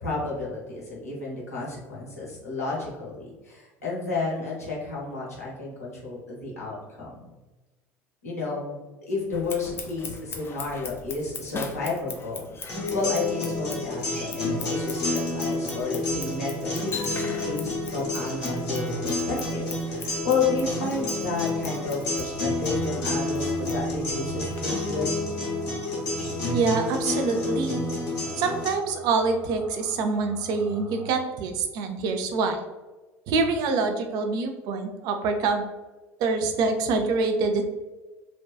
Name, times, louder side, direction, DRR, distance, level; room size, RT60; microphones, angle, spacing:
voice 1, 0.0-7.2 8.2-8.8 9.1-25.2, left 3 dB, 90° left, -5 dB, 0.7 m, -31 dB
Scissors, 9.3-24.6, left 4 dB, 30° left, 0.4 m, -41 dB
sound 1, 12.7-28.7, left 2 dB, 60° left, 0.9 m, -29 dB
sound 2, 20.2-31.2, equal, 20° right, 0.8 m, -43 dB
voice 2, 26.5-27.8 28.4-32.6 33.3-35.6 36.2-37.6, right 4 dB, 55° right, 6 dB, 0.4 m, -25 dB
2.5 x 2.2 x 2.3 m, 1.2 s
figure-of-eight pair, 65°, 8 cm